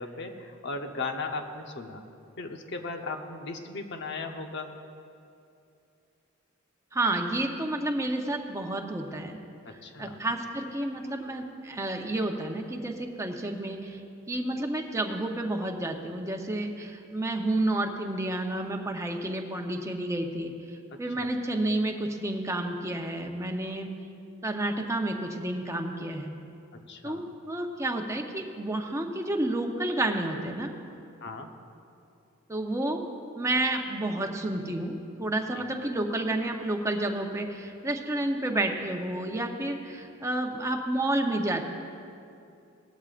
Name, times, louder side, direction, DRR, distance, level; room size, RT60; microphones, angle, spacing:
voice 1, 0.0-2.0 2.4-4.7 9.7-10.2 20.9-21.3 26.9-27.2 31.2-31.5 35.6-35.7, left 3 dB, 60° left, 5 dB, 0.9 m, -37 dB
voice 2, 6.9-9.4 10.0-14.0 14.3-20.5 21.0-23.9 24.4-26.3 27.0-30.7 32.5-33.0 33.3-41.6, right 1 dB, 15° right, 3 dB, 0.8 m, -30 dB
18.5 x 12.5 x 2.5 m, 2.6 s
head